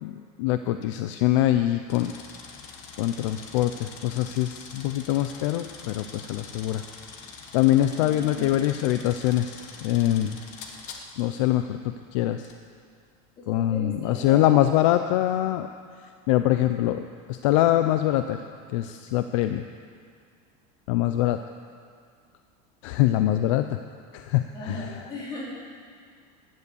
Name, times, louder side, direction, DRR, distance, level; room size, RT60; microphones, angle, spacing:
voice 1, 0.0-2.1 3.0-6.8 7.5-10.4 11.2-11.8 12.1-12.4 13.5-15.7 16.3-18.4 18.7-19.6 20.9-21.4 22.8-23.8 24.1-24.8, left 13 dB, 55° left, 9 dB, 0.5 m, -24 dB
sound 1, 1.9-11.4 12.4-12.6, left 5 dB, 40° left, 1.3 m, -44 dB
voice 2, 7.9-8.7 13.4-14.7 24.5-25.5, left 1 dB, 20° left, -4 dB, 3.3 m, -38 dB
15.0 x 11.0 x 7.1 m, 2.1 s
supercardioid pair, 180°, 19 cm